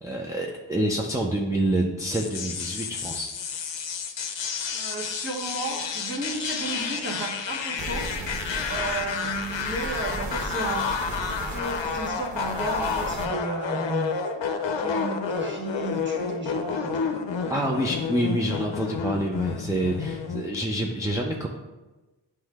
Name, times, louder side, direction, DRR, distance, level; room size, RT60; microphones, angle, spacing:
voice 1, 0.0-3.3 17.5-21.5, right 1 dB, 5° right, -1 dB, 0.5 m, -27 dB
sound 1, 2.1-20.6, left 6 dB, 70° left, 0.7 m, -30 dB
voice 2, 4.7-8.1 8.7-11.0 11.4-14.1 14.7-17.4, right 2 dB, 25° right, -1 dB, 1.3 m, -33 dB
sound 2, 7.8-13.2, right 1 dB, 70° right, 1.3 m, -36 dB
9.4 x 3.2 x 3.5 m, 1.1 s
wide cardioid pair, 80°, 47 cm